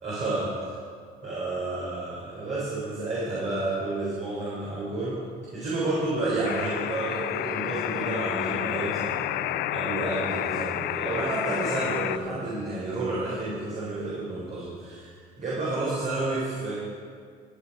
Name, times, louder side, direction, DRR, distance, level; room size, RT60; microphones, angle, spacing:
voice 1, 0.0-0.7 1.2-5.2 5.5-9.3 9.7-15.1 15.4-16.7, right 2 dB, 45° right, -8 dB, 4.0 m, -30 dB
sound 1, 6.4-12.2, left 14 dB, 75° left, 0.4 m, -30 dB
Organ, 7.2-12.9, equal, ahead, 2.9 m, -44 dB
15.0 x 9.3 x 4.9 m, 2.1 s
cardioid pair, 110°, 17 cm